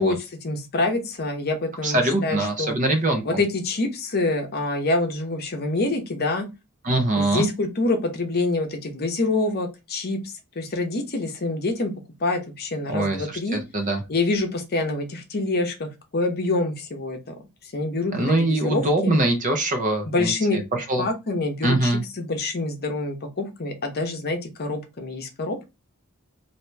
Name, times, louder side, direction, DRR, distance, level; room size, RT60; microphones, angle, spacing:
voice 1, 0.0-2.8 3.2-6.5 7.2-11.9 12.2-13.6 14.1-17.3 17.6-19.1 20.0-20.6 21.0-25.7, left 2 dB, 45° left, 4 dB, 0.8 m, -26 dB
voice 2, 1.8-3.2 6.8-7.5 12.9-13.2 13.7-14.0 18.1-20.6 20.9-21.0 21.6-22.0, right 1 dB, 35° right, 4 dB, 0.9 m, -22 dB
2.9 x 2.7 x 3.3 m, 0.24 s
head